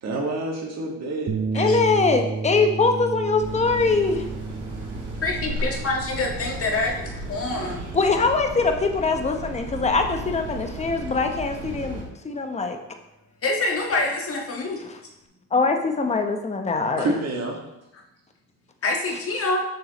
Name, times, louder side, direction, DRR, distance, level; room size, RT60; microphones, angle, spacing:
voice 1, 0.0-1.3 7.5-7.7 17.0-17.6, right 2 dB, 60° right, 0 dB, 1.7 m, -28 dB
sound 1, 1.3-9.7, right 4 dB, 40° right, 0.8 m, -33 dB
voice 2, 1.5-4.2 7.9-12.8 15.5-17.1, left 4 dB, 20° left, 5 dB, 0.8 m, -22 dB
sound 2, 3.4-12.0, right 1 dB, 80° right, 1.9 m, -35 dB
voice 3, 5.2-7.8 8.1-8.2 13.4-14.8 18.8-19.6, left 2 dB, 50° left, 0 dB, 1.6 m, -26 dB
7.5 x 6.0 x 3.0 m, 0.87 s
cardioid pair, 90°, 30 cm